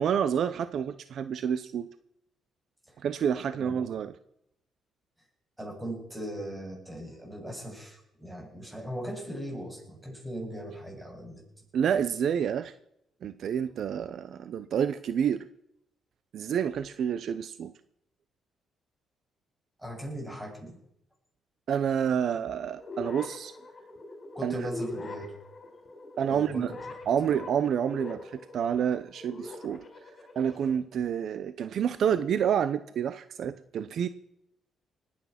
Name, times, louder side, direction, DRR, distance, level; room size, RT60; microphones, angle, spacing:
voice 1, 0.0-1.9 3.0-4.1 11.7-12.7 13.2-15.5 16.3-17.7 21.7-23.5 24.4-24.6 26.2-26.7 27.1-29.8 30.4-34.1, right 8 dB, 65° right, 13 dB, 0.7 m, -28 dB
voice 2, 5.6-11.4 19.8-20.8 24.3-25.3 26.3-26.8 27.2-27.3, right 1 dB, 10° right, -1 dB, 7.6 m, -38 dB
sound 1, 22.8-30.8, left 2 dB, 35° left, 4.0 m, -43 dB
20.0 x 8.6 x 5.9 m, 0.74 s
cardioid pair, 90°, 0 cm